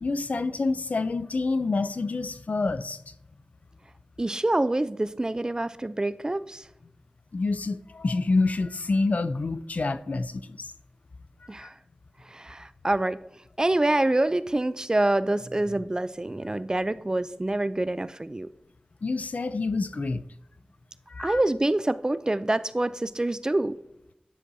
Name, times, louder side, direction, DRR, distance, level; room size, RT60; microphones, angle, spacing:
voice 1, 0.0-3.1 7.3-10.7 19.0-20.2 21.1-21.4, left 3 dB, 70° left, 0.4 m, -27 dB
voice 2, 4.2-6.6 11.5-11.7 12.3-13.2 13.6-18.5 21.2-23.8, right 2 dB, 30° right, 0.3 m, -26 dB
10.0 x 6.1 x 2.6 m
wide cardioid pair, 70°, 3 cm